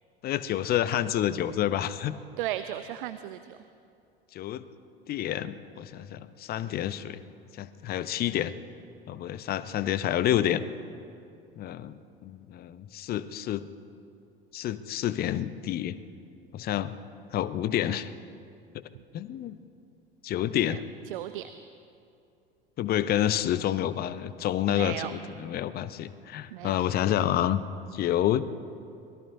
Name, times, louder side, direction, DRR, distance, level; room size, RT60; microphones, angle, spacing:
voice 1, 0.2-2.2 4.3-4.6 5.1-7.2 7.5-8.5 9.1-10.6 11.6-13.7 14.5-16.0 16.5-16.9 17.3-18.1 18.7-18.8 19.1-19.6 20.2-20.8 22.8-27.6 27.9-28.5, left 11 dB, 30° left, 14 dB, 0.7 m, -28 dB
voice 2, 2.4-3.6 20.6-20.8 21.1-21.5 24.7-25.1 26.5-26.8, right 13 dB, 60° right, 12 dB, 0.6 m, -35 dB
25.5 x 20.5 x 2.7 m, 2.5 s
figure-of-eight pair, 75°, 29 cm